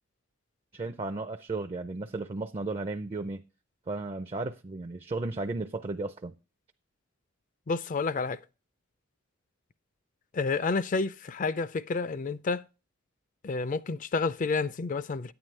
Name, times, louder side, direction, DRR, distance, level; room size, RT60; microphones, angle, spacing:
voice 1, 0.7-3.4 3.9-6.3, right 3 dB, 30° right, 0.4 m, -34 dB
voice 2, 7.7-8.4 10.3-12.6 13.4-15.3, left 4 dB, 40° left, 0.4 m, -30 dB
9.4 x 9.1 x 3.2 m
head